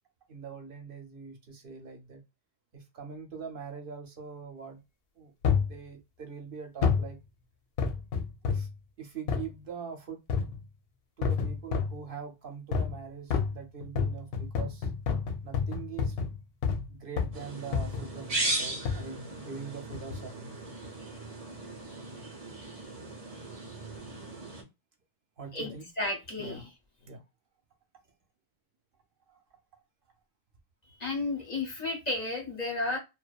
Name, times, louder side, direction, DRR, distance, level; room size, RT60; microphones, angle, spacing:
voice 1, 0.3-2.2 2.7-4.8 5.1-5.3 5.6-7.2 8.4-8.7 9.0-10.2 11.2-14.9 15.4-16.2 16.9-20.7 25.4-25.8 26.3-26.7 27.1-27.2 29.3-29.4, right 6 dB, 65° right, 3 dB, 0.9 m, -43 dB
sound 1, 5.4-5.8 6.8-7.1 7.8-8.7 9.3-9.5 10.3-10.6 11.2-12.0 12.7-13.0 13.3-16.9 17.2-17.4 17.7-18.1 18.8-19.1 19.9-20.2 20.8-20.9, left 6 dB, 75° left, 0.8 m, -29 dB
sound 2, 17.3-24.6, right 2 dB, 40° right, 0.8 m, -37 dB
voice 2, 25.5-26.7 31.0-33.0, left 2 dB, 45° left, 1 dB, 0.9 m, -33 dB
2.6 x 2.2 x 2.2 m, 0.24 s
omnidirectional pair, 1.0 m